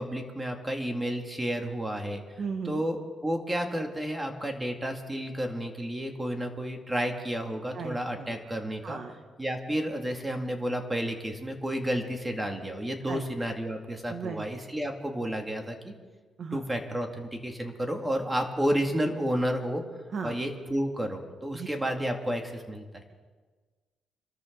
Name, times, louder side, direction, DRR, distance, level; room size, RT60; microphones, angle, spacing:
voice 1, 0.0-2.2 2.7-9.0 9.4-15.9 16.5-19.8 20.2-22.8, equal, 10° right, 3 dB, 2.5 m, -31 dB
voice 2, 2.4-2.8 7.7-8.4 8.8-9.1 13.1-13.2 14.1-14.4 16.4-16.6 20.1-20.4 21.5-21.7, right 5 dB, 55° right, 5 dB, 1.5 m, -36 dB
26.5 x 13.5 x 4.0 m, 1.4 s
cardioid pair, 90°, 0 cm